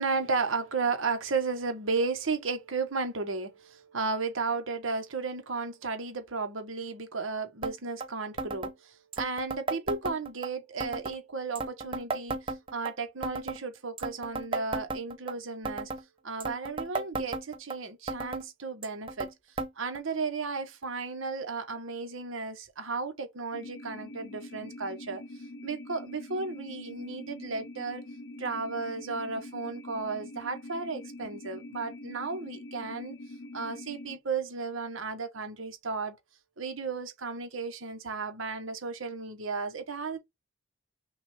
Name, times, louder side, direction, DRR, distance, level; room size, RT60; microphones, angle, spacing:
voice 1, 0.0-15.9 16.2-19.3 19.8-25.2 25.6-28.0 28.4-33.2 33.5-36.2 36.6-40.2, right 4 dB, 85° right, 1.2 m, -34 dB
sound 1, 7.6-7.7 8.0-8.1 8.4-8.7 9.1-10.5 10.8-11.2 11.6-12.9 13.2-13.6 14.0-15.3 15.7-16.0 16.4-17.8 18.1-18.4 18.8-19.3 19.6-19.7 20.0-20.1 20.8-20.9 21.7-21.8, right 3 dB, 25° right, 0.6 m, -34 dB
sound 2, 23.5-34.2, left 1 dB, 60° left, 0.7 m, -44 dB
5.9 x 2.5 x 3.5 m
head